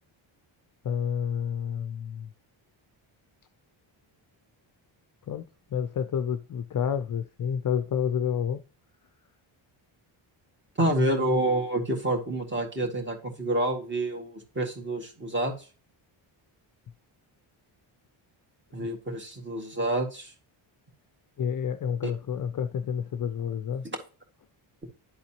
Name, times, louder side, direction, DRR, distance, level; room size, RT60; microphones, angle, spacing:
voice 1, 0.8-2.3 5.3-8.6 18.8-18.9 21.4-23.8, left 8 dB, 45° left, 0.5 m, -29 dB
voice 2, 10.8-15.5 18.7-20.3, right 1 dB, 20° right, 2.1 m, -28 dB
11.5 x 4.0 x 2.9 m
cardioid pair, 110°, 49 cm